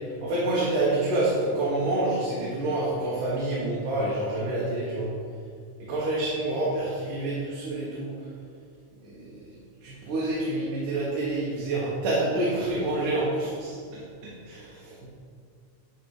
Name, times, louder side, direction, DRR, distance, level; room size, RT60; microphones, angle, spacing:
voice 1, 0.2-5.2 5.8-8.2 9.0-9.5 9.8-15.1, right 2 dB, 85° right, -8 dB, 2.9 m, -28 dB
10.0 x 4.2 x 4.8 m, 2.2 s
omnidirectional pair, 3.5 m